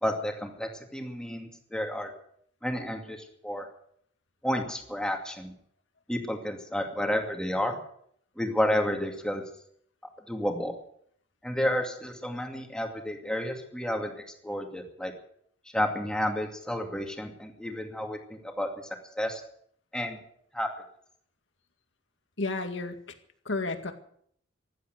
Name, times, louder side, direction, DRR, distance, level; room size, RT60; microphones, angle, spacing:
voice 1, 0.0-2.1 2.6-3.7 4.4-5.5 6.1-7.8 8.4-9.4 10.0-10.8 11.4-15.1 15.7-19.4 19.9-20.2 20.5-20.7, equal, 5° left, 3 dB, 2.4 m, -31 dB
voice 2, 22.4-23.2 23.4-23.9, left 3 dB, 65° left, 7 dB, 2.1 m, -32 dB
15.5 x 11.5 x 8.0 m, 0.66 s
head